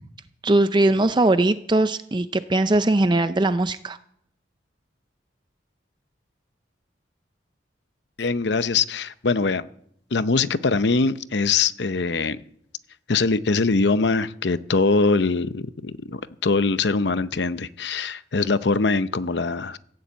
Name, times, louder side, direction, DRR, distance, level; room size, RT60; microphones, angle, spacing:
voice 1, 0.4-4.0, right 2 dB, 25° right, 0.5 m, -20 dB
voice 2, 8.2-9.7 10.1-12.4 13.1-19.8, left 4 dB, 70° left, 0.7 m, -22 dB
16.0 x 10.5 x 8.3 m
head